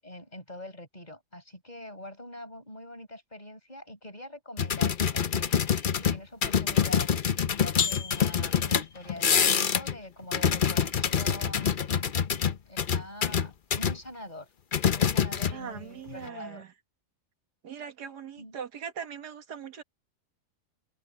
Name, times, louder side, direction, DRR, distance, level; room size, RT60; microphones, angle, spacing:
voice 1, 0.0-7.1 7.6-11.8 12.7-14.5 14.9-16.6 18.4-18.6, left 1 dB, 25° left, 7.1 m, -44 dB
sound 1, 4.6-10.0 10.2-14.0 14.7-15.8 16.1-16.3, left 7 dB, 45° left, 0.7 m, -26 dB
voice 2, 15.5-16.7 17.6-19.8, right 7 dB, 85° right, 2.1 m, -40 dB
open air
omnidirectional pair, 1.7 m